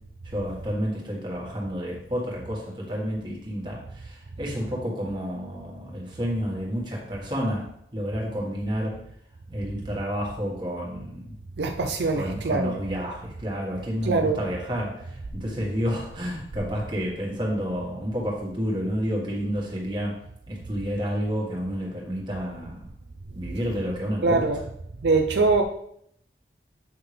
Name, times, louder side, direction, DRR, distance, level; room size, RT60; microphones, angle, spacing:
voice 1, 0.2-9.0 9.5-11.3 12.1-20.2 20.5-22.9 23.3-24.4, equal, 25° right, 1.8 m, -30 dB
voice 2, 11.6-12.8 14.0-14.4 24.2-24.6 25.0-25.6, right 3 dB, 75° right, 0.5 m, -23 dB
8.2 x 5.7 x 3.4 m
head